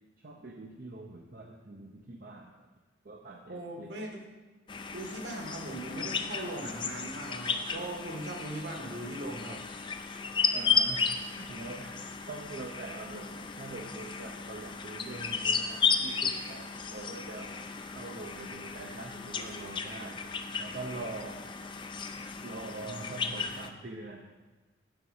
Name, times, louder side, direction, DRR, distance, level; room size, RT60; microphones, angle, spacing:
voice 1, 0.2-2.5 3.0-3.9 10.5-17.5 17.9-21.4 22.4-24.3, right 2 dB, 50° right, 1 dB, 0.7 m, -44 dB
voice 2, 3.5-4.2 4.9-9.6 15.1-15.6 22.8-23.4, right 1 dB, 65° right, 0 dB, 1.8 m, -40 dB
sound 1, 4.7-23.7, left 5 dB, 25° left, 0.4 m, -34 dB
8.8 x 6.0 x 5.6 m, 1.3 s
head